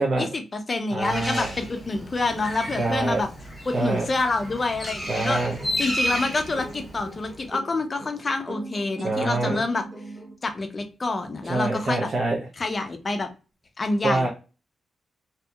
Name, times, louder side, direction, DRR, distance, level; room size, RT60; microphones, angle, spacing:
voice 1, 0.0-3.3 3.7-5.4 5.8-9.8 10.4-12.1 12.6-13.3 13.8-14.3, left 3 dB, 30° left, 6 dB, 0.5 m, -27 dB
voice 2, 0.9-1.5 2.8-3.2 3.7-4.1 5.1-5.6 9.0-9.6 11.4-12.5 14.0-14.3, right 2 dB, 55° right, -2 dB, 0.6 m, -25 dB
Bird, 1.0-7.5, equal, 5° left, 1.1 m, -33 dB
sound 1, 4.9-10.3, right 2 dB, 20° right, 0.8 m, -40 dB
2.7 x 2.7 x 2.3 m, 0.32 s
cardioid pair, 115°, 0 cm